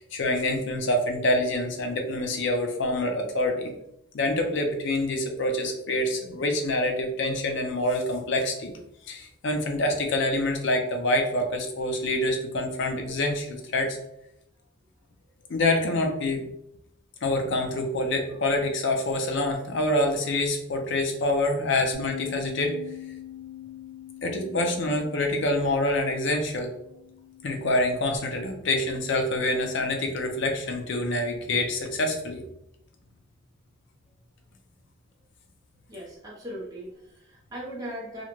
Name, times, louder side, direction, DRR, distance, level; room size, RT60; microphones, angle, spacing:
voice 1, 0.0-3.7 4.1-8.7 9.1-14.0 15.5-16.4 17.2-22.8 24.2-26.7 27.4-32.4, left 1 dB, 60° left, 4 dB, 0.5 m, -26 dB
Bass guitar, 21.9-28.2, left 10 dB, 75° left, 0.9 m, -43 dB
voice 2, 35.9-38.2, equal, 20° right, -5 dB, 0.6 m, -39 dB
2.5 x 2.1 x 2.9 m, 0.79 s
head